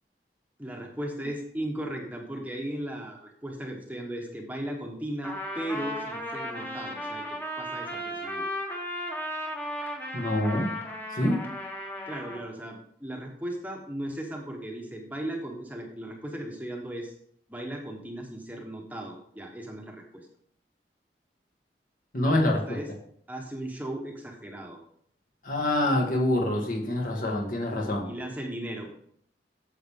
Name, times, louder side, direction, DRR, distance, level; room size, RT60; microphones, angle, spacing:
voice 1, 0.6-7.2 7.6-8.5 12.1-17.1 17.5-20.3 22.2-22.4 22.7-22.9 23.3-24.8 28.0-28.9, right 1 dB, 10° right, 1 dB, 1.1 m, -37 dB
Trumpet, 5.2-12.4, equal, 10° left, 1.3 m, -35 dB
voice 2, 10.1-10.7 11.1-11.4 22.1-22.8 25.4-28.1, left 1 dB, 50° left, 0 dB, 1.8 m, -26 dB
9.3 x 7.1 x 3.7 m, 0.65 s
head